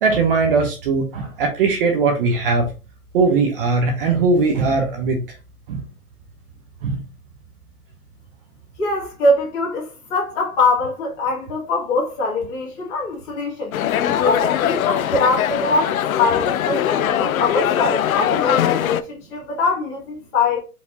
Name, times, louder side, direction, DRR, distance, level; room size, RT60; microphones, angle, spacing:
voice 1, 0.0-2.7 3.1-5.2 5.7-5.8 6.8-7.0, right 4 dB, 35° right, 0.8 m, -19 dB
voice 2, 8.8-13.8 14.1-20.6, left 3 dB, 30° left, 2.1 m, -22 dB
sound 1, 13.7-19.0, left 10 dB, 65° left, 0.5 m, -21 dB
4.6 x 3.4 x 2.7 m
hypercardioid pair, 145°, 46 cm